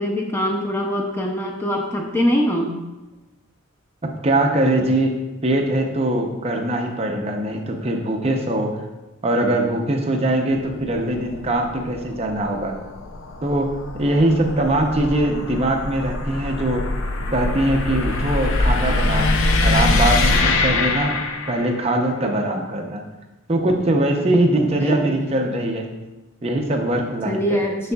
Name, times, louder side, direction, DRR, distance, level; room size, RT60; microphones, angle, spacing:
voice 1, 0.0-2.7 24.8-25.2 27.3-27.9, equal, 10° left, 0 dB, 0.5 m, -23 dB
voice 2, 4.2-8.8 9.2-12.8 13.4-16.9 17.3-19.3 19.6-21.2 21.5-23.0 23.5-25.9 26.4-27.6, right 1 dB, 30° right, 2 dB, 0.6 m, -21 dB
sound 1, 10.5-21.9, left 2 dB, 65° left, 0.5 m, -23 dB
6.8 x 6.6 x 2.3 m, 1.1 s
head